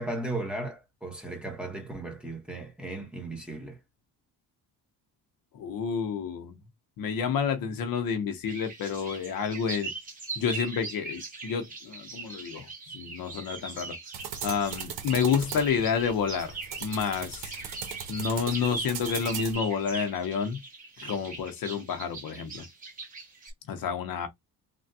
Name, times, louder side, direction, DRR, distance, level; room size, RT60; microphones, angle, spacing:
voice 1, 0.0-3.8, right 2 dB, 5° right, 0.9 m, -36 dB
voice 2, 5.5-6.6 7.0-9.9 10.4-12.7 12.9-14.0 14.4-16.5 16.8-17.5 18.1-20.6 21.0-22.7 23.7-24.3, left 6 dB, 65° left, 0.8 m, -29 dB
sound 1, 8.5-23.5, right 3 dB, 20° right, 1.4 m, -40 dB
sound 2, 14.1-19.5, right 8 dB, 75° right, 1.0 m, -39 dB
3.3 x 2.2 x 2.6 m
cardioid pair, 140°, 38 cm